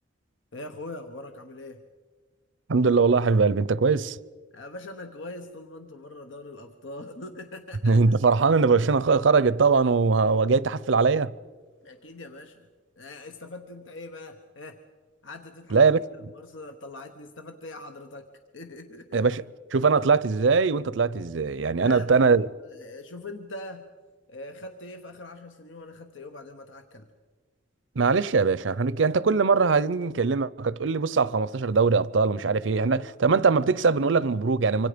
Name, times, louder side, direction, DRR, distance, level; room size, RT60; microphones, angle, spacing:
voice 1, 0.5-1.8 4.5-8.0 11.8-12.7 13.0-14.8 15.2-15.9 16.3-18.3 18.5-19.2 21.8-22.3 22.7-23.9 24.3-27.1, left 2 dB, 85° left, 1.2 m, -42 dB
voice 2, 2.7-4.2 7.8-11.3 15.7-16.0 19.1-19.4 19.7-22.5 28.0-34.9, right 4 dB, 75° right, 0.6 m, -21 dB
26.0 x 25.0 x 5.1 m
head